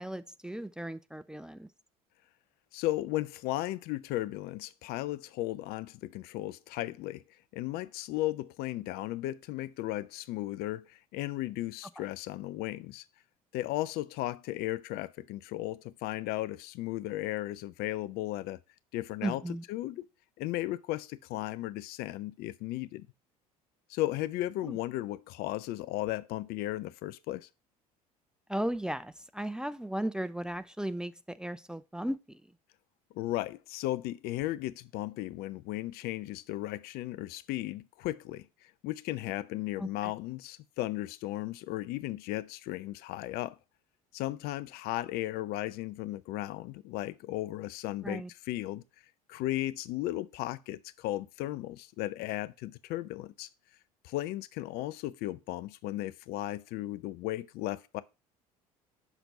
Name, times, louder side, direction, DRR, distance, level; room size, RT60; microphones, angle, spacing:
voice 1, 0.0-1.7 12.0-12.1 19.2-19.6 24.6-24.8 28.5-32.4 39.8-40.1 48.0-48.3, right 1 dB, 5° right, 0.3 m, -36 dB
voice 2, 2.7-7.2 7.5-13.0 13.5-18.6 18.9-19.4 19.7-20.1 20.4-23.1 23.9-27.5 33.1-38.4 38.8-43.6 44.1-48.8 49.3-53.5 54.0-58.0, left 16 dB, 55° left, 0.5 m, -35 dB
5.9 x 4.1 x 5.3 m
figure-of-eight pair, 65°, 19 cm